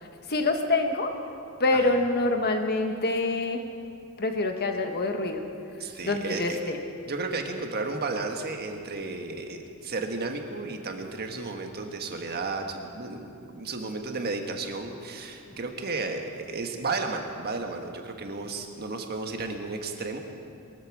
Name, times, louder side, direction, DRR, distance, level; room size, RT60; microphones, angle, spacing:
voice 1, 0.3-1.1 1.6-3.6 4.2-5.4 6.0-6.8, left 2 dB, 50° left, 5 dB, 1.4 m, -26 dB
voice 2, 5.8-6.6 7.0-20.2, right 3 dB, 50° right, 4 dB, 1.5 m, -33 dB
22.5 x 13.5 x 4.8 m, 2.6 s
head